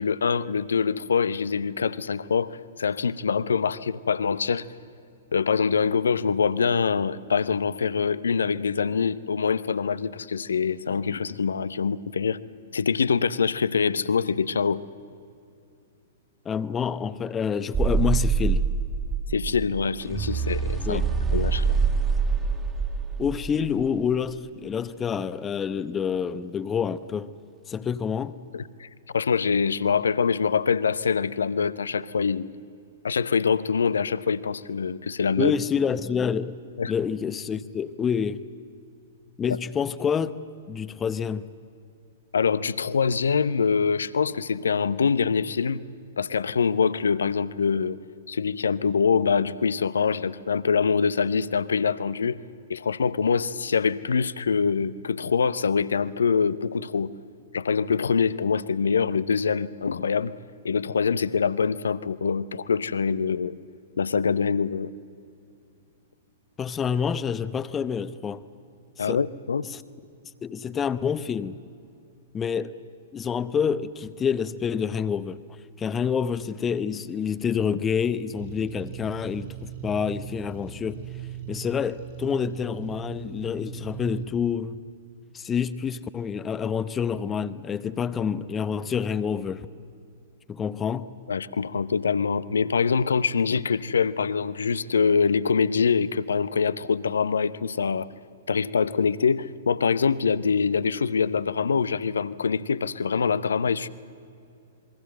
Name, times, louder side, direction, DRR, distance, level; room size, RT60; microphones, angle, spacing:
voice 1, 0.0-4.6 5.3-12.4 12.7-14.8 19.3-21.0 21.3-21.7 28.5-28.9 29.1-32.6 33.0-35.5 36.8-36.9 39.5-39.6 42.3-45.8 46.2-48.0 48.3-52.4 52.7-57.1 57.5-60.3 60.6-63.5 64.0-64.9 69.0-69.6 91.3-98.1 98.5-103.9, left 5 dB, 70° left, 17 dB, 0.8 m, -24 dB
voice 2, 16.4-18.6 20.8-21.1 23.2-27.3 27.7-28.4 35.4-36.6 36.9-38.4 39.4-40.3 40.7-41.5 66.6-68.4 69.0-69.2 69.7-69.8 70.4-71.6 72.3-72.7 73.1-75.4 75.8-81.0 81.5-84.8 85.3-89.7 90.5-91.1, left 7 dB, 20° left, 15 dB, 0.9 m, -27 dB
sound 1, 17.7-23.8, right 5 dB, 20° right, 2.1 m, -25 dB
sound 2, 78.4-84.3, right 11 dB, 50° right, 3.4 m, -39 dB
27.5 x 22.0 x 7.7 m, 2.5 s
figure-of-eight pair, 105°, 0 cm